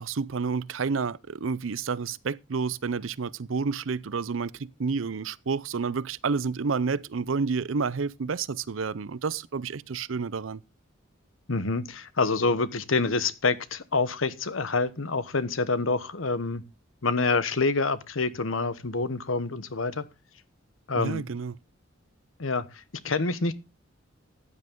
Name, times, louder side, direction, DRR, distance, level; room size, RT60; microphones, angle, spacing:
voice 1, 0.0-10.6 20.9-21.6, right 5 dB, 80° right, 0.6 m, -30 dB
voice 2, 11.5-16.6 17.0-20.0 20.9-21.3 22.4-22.6 23.0-23.5, left 3 dB, 85° left, 1.1 m, -27 dB
14.5 x 9.7 x 3.8 m
head